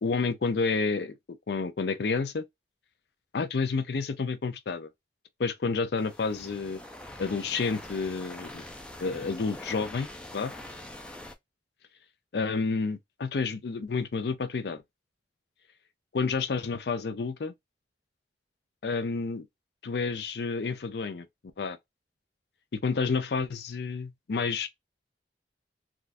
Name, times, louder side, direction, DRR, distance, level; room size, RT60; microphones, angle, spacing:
voice 1, 0.0-1.2 1.5-2.4 3.3-4.9 5.4-6.8 7.2-8.6 9.0-10.1 10.3-10.5 12.3-14.8 16.1-17.5 18.8-19.5 19.8-21.3 21.6-21.8 22.7-24.7, left 4 dB, 65° left, 0.5 m, -30 dB
sound 1, 6.0-11.3, left 1 dB, 5° left, 0.4 m, -44 dB
3.5 x 2.3 x 2.5 m
head